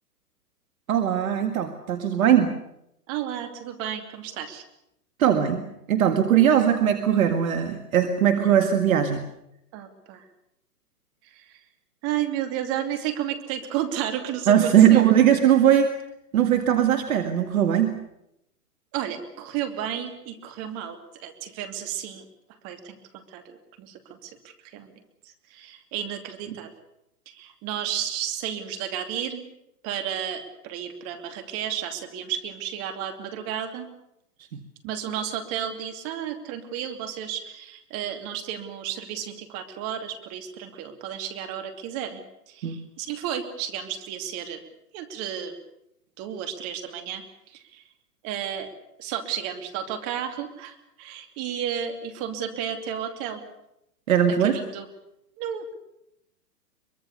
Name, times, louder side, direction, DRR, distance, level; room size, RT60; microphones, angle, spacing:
voice 1, 0.9-2.5 5.2-9.2 14.5-15.9 16.3-18.0 42.6-42.8 54.1-54.6, right 9 dB, 60° right, 8 dB, 2.0 m, -20 dB
voice 2, 3.1-4.6 8.4-8.5 9.7-10.2 11.3-11.6 12.0-15.1 18.9-22.2 22.6-24.9 25.2-26.7 27.3-29.4 29.8-33.9 34.8-42.2 42.5-44.6 44.9-45.6 46.2-47.2 47.5-47.8 48.2-48.7 49.0-53.4 54.4-54.9 55.4-55.7, right 9 dB, 30° right, 8 dB, 2.7 m, -32 dB
23.5 x 22.5 x 6.8 m, 0.82 s
hypercardioid pair, 130°, 47 cm